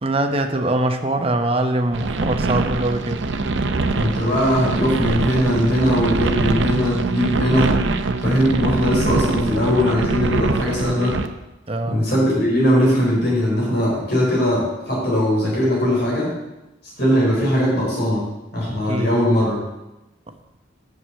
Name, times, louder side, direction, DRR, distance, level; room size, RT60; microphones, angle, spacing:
voice 1, 0.0-3.3 11.7-12.1 18.9-19.1, right 1 dB, 30° right, 6 dB, 0.8 m, -22 dB
sound 1, 1.9-11.3, right 3 dB, 70° right, 0.6 m, -23 dB
voice 2, 3.9-7.8 8.2-11.2 11.8-16.3 17.0-18.2 18.5-19.6, equal, 55° left, -5 dB, 3.9 m, -20 dB
7.3 x 6.1 x 7.5 m, 0.97 s
head